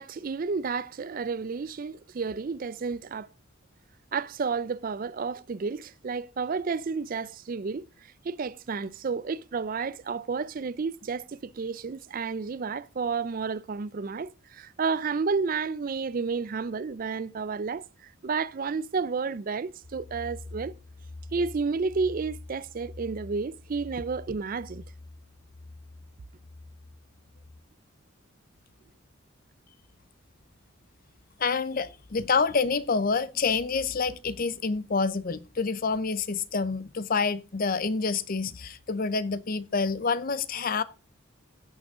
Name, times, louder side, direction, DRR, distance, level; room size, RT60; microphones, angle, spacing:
voice 1, 0.0-3.3 4.1-7.9 8.2-20.8 21.3-24.8, right 5 dB, 40° right, 0.4 m, -31 dB
sound 1, 19.8-27.6, left 2 dB, 70° left, 1.0 m, -46 dB
voice 2, 31.4-40.8, left 4 dB, 45° left, 0.6 m, -27 dB
17.0 x 6.1 x 3.6 m
head